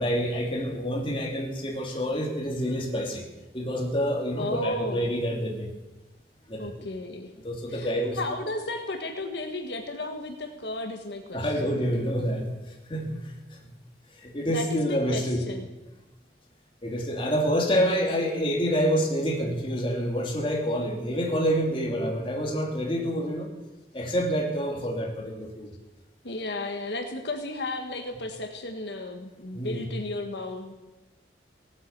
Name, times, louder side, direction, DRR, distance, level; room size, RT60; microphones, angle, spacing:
voice 1, 0.0-3.2 3.5-5.7 6.5-6.7 7.4-8.2 11.3-12.5 12.9-13.2 13.6-13.7 14.2-15.4 16.8-23.5 23.9-25.7 29.5-29.9, equal, 30° left, 1 dB, 2.7 m, -27 dB
voice 2, 4.3-5.1 6.6-7.3 7.7-11.5 14.5-15.7 26.2-30.7, left 2 dB, 80° left, 5 dB, 1.5 m, -34 dB
17.5 x 9.2 x 8.1 m, 1.1 s
head